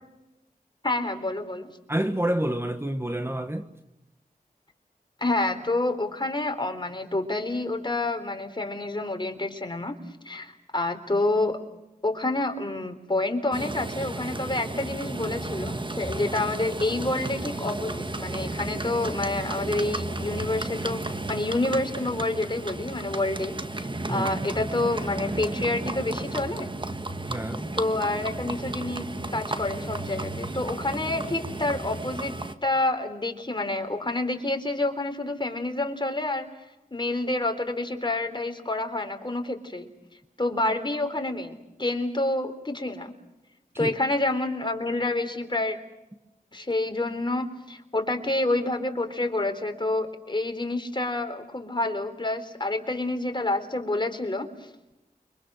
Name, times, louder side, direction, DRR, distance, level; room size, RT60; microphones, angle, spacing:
voice 1, 0.8-1.7 5.2-10.0 10.3-11.6 12.0-26.7 27.3-27.4 27.8-32.3 32.6-36.5 36.9-39.9 40.4-43.1 43.8-45.8 46.5-54.7, left 2 dB, 30° left, 3.8 m, -28 dB
voice 2, 1.9-3.7 24.1-24.3 27.3-27.8 43.8-43.9, right 1 dB, 15° right, 1.4 m, -28 dB
Livestock farm animals working animals, 13.5-32.5, right 2 dB, 30° right, 1.6 m, -33 dB
29.5 x 25.0 x 6.5 m
cardioid pair, 55°, 16 cm